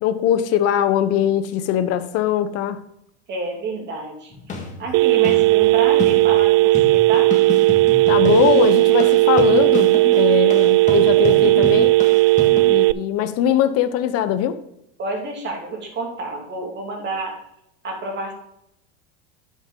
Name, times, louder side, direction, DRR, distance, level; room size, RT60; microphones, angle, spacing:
voice 1, 0.0-2.8 8.1-11.9 12.7-14.6, left 10 dB, 45° left, 11 dB, 1.0 m, -21 dB
voice 2, 3.3-7.3 15.0-17.4 17.8-18.3, right 3 dB, 35° right, 1 dB, 2.9 m, -29 dB
sound 1, 4.3-12.6, left 3 dB, 20° left, 1.7 m, -30 dB
Telephone, 4.9-12.9, right 18 dB, 70° right, 0.4 m, -15 dB
10.5 x 6.5 x 3.8 m, 0.79 s
supercardioid pair, 135°, 32 cm